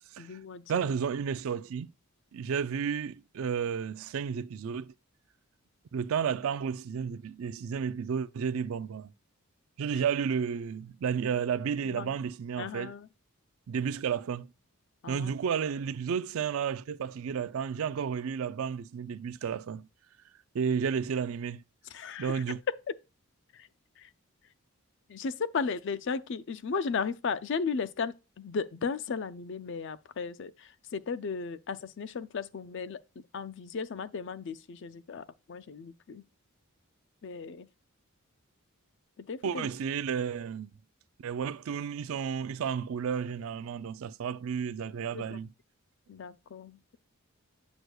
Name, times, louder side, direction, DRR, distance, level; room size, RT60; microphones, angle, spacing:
voice 1, 0.2-0.9 11.8-12.1 12.6-13.1 15.0-15.3 21.9-22.4 23.5-23.7 24.0-24.1 25.1-33.0 33.3-36.2 37.2-37.7 39.3-39.7 45.1-45.4 46.1-47.0, left 5 dB, 55° left, 0.4 m, -35 dB
voice 2, 0.7-1.9 2.3-4.9 5.9-9.1 9.8-12.9 13.7-14.5 15.1-19.9 20.5-21.6 22.2-22.6 39.4-40.7 41.2-45.5, right 7 dB, 70° right, 0.3 m, -32 dB
8.0 x 6.1 x 2.3 m
head